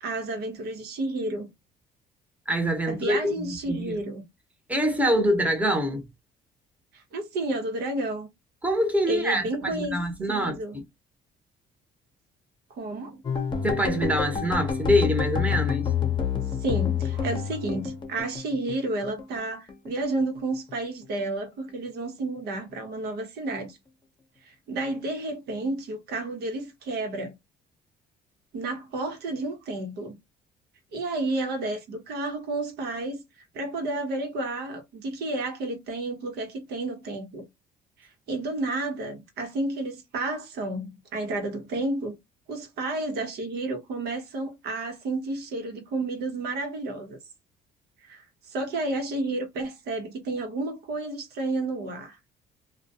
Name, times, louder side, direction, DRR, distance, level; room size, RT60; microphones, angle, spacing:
voice 1, 0.0-1.5 2.9-4.2 6.9-8.3 9.1-10.0 10.3-10.8 12.7-13.2 16.6-23.8 24.4-27.4 28.5-30.2 30.9-33.2 33.5-37.5 38.0-42.2 42.5-47.2 48.0-52.2, right 2 dB, 75° right, 0.9 m, -31 dB
voice 2, 2.5-3.9 4.7-6.0 8.6-10.8 13.6-15.9, equal, 10° right, 0.9 m, -25 dB
sound 1, 13.2-19.4 19.7-20.7 21.0-21.4 21.7-21.9, left 7 dB, 25° left, 0.8 m, -28 dB
2.2 x 2.2 x 2.7 m
cardioid pair, 110°, 17 cm